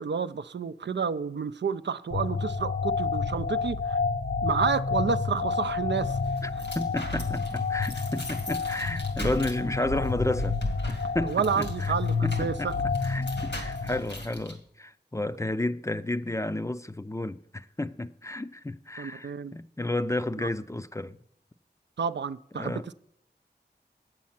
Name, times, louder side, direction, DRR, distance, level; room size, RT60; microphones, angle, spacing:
voice 1, 0.0-4.0 4.4-6.2 11.2-12.7 19.0-19.5 20.4-20.5 22.0-22.9, right 6 dB, 80° right, 0.4 m, -30 dB
sound 1, 2.1-14.0, left 4 dB, 70° left, 0.8 m, -30 dB
sound 2, 5.9-14.5, equal, 90° left, 2.1 m, -39 dB
voice 2, 6.4-10.6 10.9-11.9 12.2-12.7 13.0-21.2 22.5-22.8, left 1 dB, 15° left, 0.4 m, -32 dB
8.4 x 7.5 x 5.7 m
wide cardioid pair, 60°, 18 cm